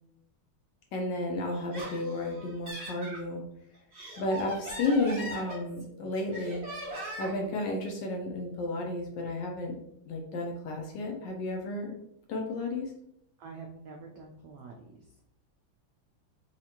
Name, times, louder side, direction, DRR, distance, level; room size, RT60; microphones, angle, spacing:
voice 1, 0.9-3.4 4.2-6.6 7.2-9.8 10.1-11.9 12.3-12.9, left 2 dB, 70° left, 1 dB, 1.1 m, -32 dB
Laughter, 1.5-3.2 3.7-5.9 6.3-7.5, right 1 dB, 45° right, 1.8 m, -40 dB
voice 2, 13.4-15.1, right 4 dB, 90° right, 1 dB, 0.9 m, -46 dB
4.3 x 2.4 x 2.8 m, 0.74 s
omnidirectional pair, 2.3 m